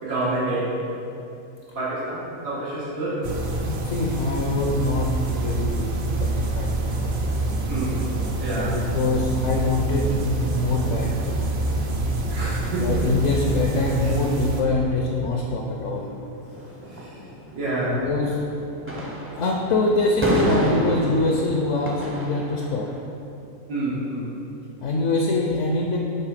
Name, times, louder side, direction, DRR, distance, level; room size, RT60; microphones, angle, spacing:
voice 1, 0.0-0.7 1.7-3.2 7.7-8.0 8.4-8.8 12.3-13.1 16.9-17.1 17.5-18.0 23.7-24.3, right 2 dB, 85° right, -12 dB, 1.9 m, -27 dB
sound 1, 3.2-14.6, right 2 dB, 55° right, 0.7 m, -26 dB
voice 2, 3.7-6.7 8.7-11.7 12.8-16.1 17.9-18.4 19.4-22.9 24.8-26.0, left 2 dB, 65° left, 0 dB, 0.9 m, -24 dB
sound 2, 5.2-23.0, equal, 15° right, 0.5 m, -34 dB
7.5 x 3.4 x 5.0 m, 2.7 s
omnidirectional pair, 1.4 m